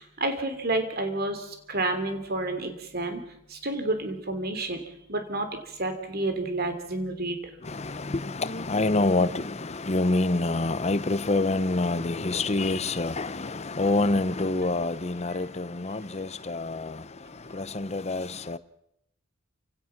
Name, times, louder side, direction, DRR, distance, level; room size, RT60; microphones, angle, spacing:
voice 1, 0.0-3.2 3.5-4.8 5.1-5.5 5.8-7.4, right 2 dB, 50° right, 3.1 m, -30 dB
voice 2, 7.7-16.9 17.5-18.6, left 2 dB, 30° left, 0.8 m, -27 dB
28.5 x 17.0 x 6.0 m
head